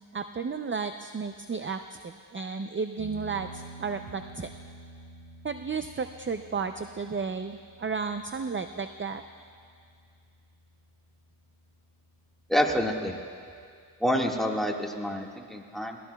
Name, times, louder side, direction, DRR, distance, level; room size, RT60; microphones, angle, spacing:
voice 1, 0.1-4.5 5.4-9.2, right 5 dB, 30° right, 8 dB, 0.5 m, -33 dB
sound 1, 3.0-12.0, right 3 dB, 80° right, 5.0 m, -49 dB
voice 2, 12.5-13.1 14.0-16.0, equal, ahead, -1 dB, 1.7 m, -27 dB
29.0 x 18.0 x 2.3 m, 2.2 s
wide cardioid pair, 60°, 44 cm